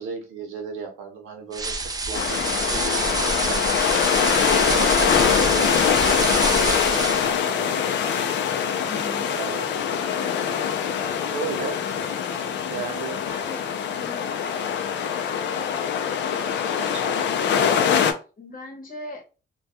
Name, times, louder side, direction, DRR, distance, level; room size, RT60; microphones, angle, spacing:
voice 1, 0.0-3.7 4.6-7.8 9.3-9.8 11.3-11.8 12.7-13.2 16.7-17.2, right 5 dB, 80° right, 0.8 m, -35 dB
sound 1, 1.5-7.4, right 3 dB, 20° right, 0.3 m, -27 dB
sound 2, 2.1-18.1, left 7 dB, 65° left, 0.4 m, -23 dB
voice 2, 8.9-9.4 13.2-13.6 14.0-14.4 18.4-19.2, left 1 dB, 45° left, 0.9 m, -38 dB
2.2 x 2.2 x 2.7 m
cardioid pair, 90°, 20 cm